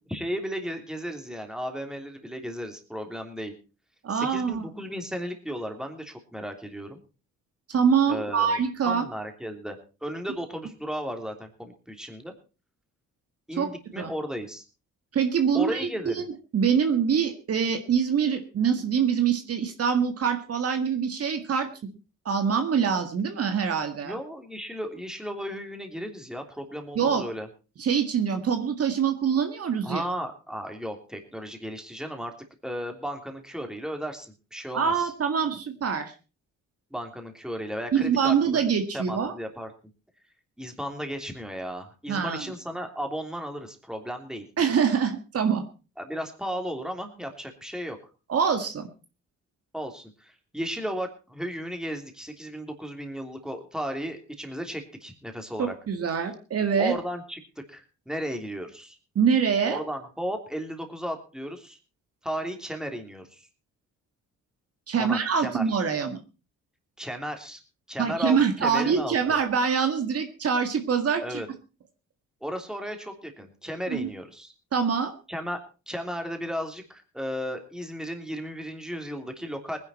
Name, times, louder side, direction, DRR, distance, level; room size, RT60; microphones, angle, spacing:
voice 1, 0.1-3.5 4.1-7.0 8.1-8.6 8.8-12.3 13.5-14.6 15.5-16.2 24.0-27.5 29.8-32.3 32.6-35.1 36.9-38.6 38.9-39.7 40.6-44.4 46.0-48.0 49.7-55.7 56.8-57.4 57.7-59.0 59.6-61.8 62.2-63.5 65.0-65.6 67.0-67.6 67.9-69.4 71.2-71.5 72.4-74.5 75.3-75.6 75.9-79.8, equal, ahead, 4 dB, 3.1 m, -35 dB
voice 2, 4.0-4.6 7.7-9.0 13.6-14.1 15.1-15.9 16.2-16.3 16.5-21.7 22.3-24.2 27.0-27.2 27.8-30.0 34.7-36.1 37.9-39.3 42.1-42.4 44.6-45.6 48.3-48.9 55.6-56.9 59.2-59.8 64.9-66.2 68.0-71.4 73.9-74.1 74.7-75.1, right 7 dB, 50° right, 7 dB, 1.9 m, -24 dB
19.5 x 10.5 x 4.3 m, 0.33 s
cardioid pair, 90°, 30 cm